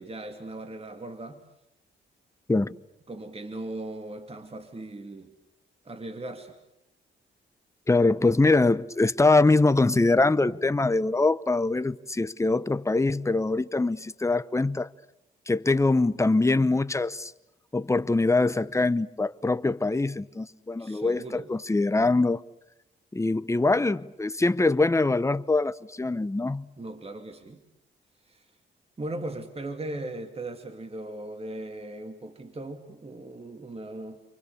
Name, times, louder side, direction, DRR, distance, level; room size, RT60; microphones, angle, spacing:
voice 1, 0.0-1.4 3.1-5.3 5.8-6.6 20.8-21.5 26.8-27.6 28.2-28.5 29.0-34.2, right 2 dB, 30° right, 2.6 m, -38 dB
voice 2, 7.9-14.9 15.5-17.3 17.7-22.4 23.1-26.7, left 3 dB, 15° left, 0.9 m, -23 dB
29.5 x 24.0 x 6.9 m
cardioid pair, 75°, 20 cm